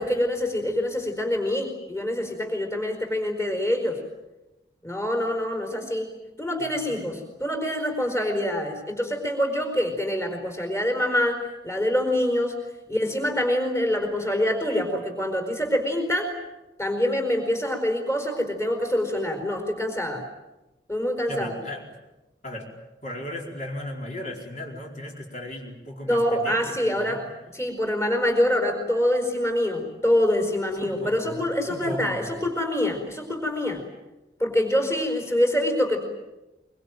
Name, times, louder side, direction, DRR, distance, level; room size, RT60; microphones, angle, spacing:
voice 1, 0.0-4.0 4.8-6.1 6.4-12.6 12.9-16.3 16.8-20.2 20.9-21.5 26.0-27.2 27.5-33.8 34.4-36.0, left 1 dB, 15° left, 4 dB, 4.8 m, -25 dB
voice 2, 6.6-7.1 21.3-21.8 22.4-22.7 23.0-27.2 30.6-32.2, left 1 dB, 40° left, 0 dB, 4.7 m, -36 dB
24.5 x 24.5 x 9.1 m, 1.0 s
head